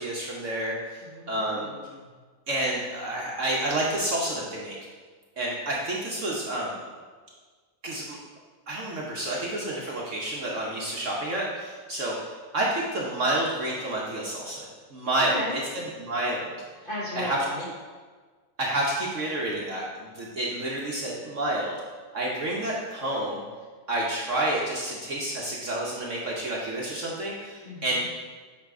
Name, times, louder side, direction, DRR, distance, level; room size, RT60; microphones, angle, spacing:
voice 1, 0.0-1.7 2.5-4.8 5.4-6.8 7.8-8.2 8.7-15.6 16.0-16.5 17.2-17.4 18.6-21.7 22.1-23.4 23.9-28.0, right 1 dB, 50° right, -3 dB, 1.0 m, -29 dB
voice 2, 1.0-2.1 15.2-15.6 16.8-17.7 27.6-28.0, left 1 dB, 35° left, -6 dB, 0.9 m, -36 dB
8.5 x 3.3 x 4.8 m, 1.5 s
omnidirectional pair, 2.0 m